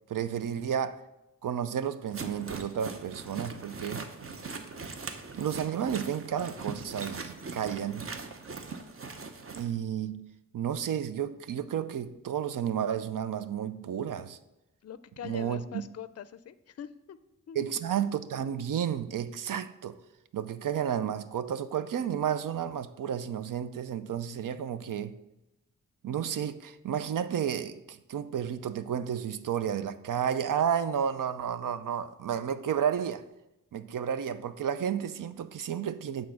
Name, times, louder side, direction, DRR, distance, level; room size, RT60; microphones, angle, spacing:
voice 1, 0.1-1.0 1.4-4.1 5.4-8.1 9.5-10.3 10.5-14.4 15.2-15.8 17.5-20.0 20.3-25.2 26.0-33.2 33.7-36.3, right 8 dB, 75° right, 0.6 m, -32 dB
sound 1, 2.1-9.7, right 4 dB, 40° right, 0.7 m, -41 dB
voice 2, 14.8-17.2 17.5-17.7, left 9 dB, 50° left, 0.4 m, -43 dB
8.1 x 3.8 x 6.3 m
wide cardioid pair, 100°, 33 cm